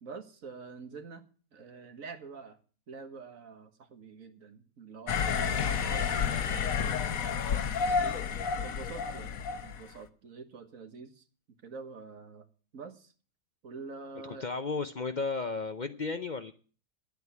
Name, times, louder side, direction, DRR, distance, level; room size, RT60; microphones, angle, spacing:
voice 1, 0.0-1.2 1.5-2.6 2.9-8.2 8.6-9.4 9.6-11.2 11.6-12.5 12.7-13.1 13.6-14.5, right 4 dB, 75° right, 7 dB, 1.8 m, -46 dB
sound 1, 5.1-9.8, left 6 dB, 80° left, 1.4 m, -30 dB
voice 2, 14.2-16.5, left 4 dB, 45° left, 9 dB, 0.7 m, -34 dB
11.0 x 8.4 x 8.2 m, 0.40 s
omnidirectional pair, 1.4 m